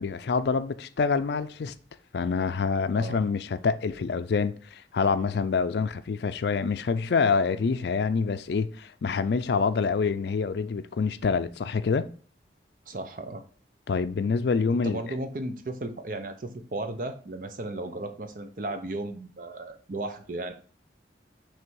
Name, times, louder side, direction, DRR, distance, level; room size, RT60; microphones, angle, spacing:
voice 1, 0.0-1.7 2.1-12.1 13.9-15.0, left 5 dB, 70° left, 0.4 m, -26 dB
voice 2, 12.9-13.4 14.8-20.5, right 2 dB, 50° right, 0.7 m, -35 dB
6.2 x 3.3 x 4.6 m
head